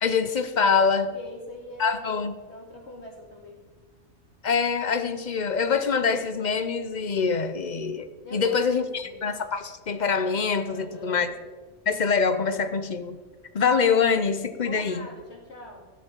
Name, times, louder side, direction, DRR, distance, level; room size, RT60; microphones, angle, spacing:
voice 1, 0.0-1.1 1.8-2.3 4.4-11.3 11.9-13.2 13.5-15.0, left 5 dB, 45° left, 11 dB, 0.8 m, -24 dB
voice 2, 0.9-2.2 2.5-3.6 8.2-9.4 10.6-11.3 14.6-15.9, left 1 dB, 60° left, 0 dB, 2.7 m, -42 dB
12.0 x 10.5 x 4.5 m, 1.3 s
omnidirectional pair, 1.3 m